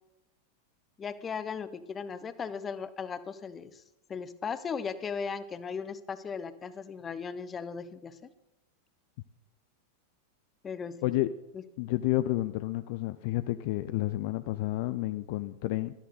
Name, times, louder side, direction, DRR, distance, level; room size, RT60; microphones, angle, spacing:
voice 1, 1.0-3.8 4.1-8.3 10.6-11.0 11.5-11.6, left 6 dB, 20° left, 14 dB, 0.9 m, -37 dB
voice 2, 11.8-15.9, left 17 dB, 50° left, 13 dB, 0.5 m, -30 dB
17.5 x 13.0 x 4.2 m, 0.93 s
figure-of-eight pair, 90°, 0 cm